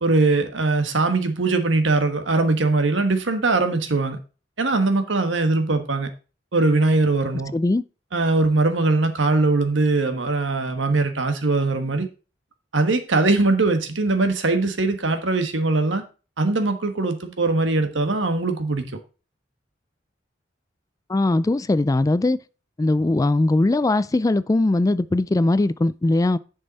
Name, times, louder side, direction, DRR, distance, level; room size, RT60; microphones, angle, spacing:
voice 1, 0.0-4.2 4.6-6.1 6.5-7.5 8.1-12.1 12.7-16.0 16.4-18.9, right 3 dB, 85° right, 1.4 m, -21 dB
voice 2, 7.5-7.8 21.1-22.4 22.8-26.4, left 2 dB, 20° left, 0.3 m, -20 dB
10.5 x 5.4 x 4.1 m
head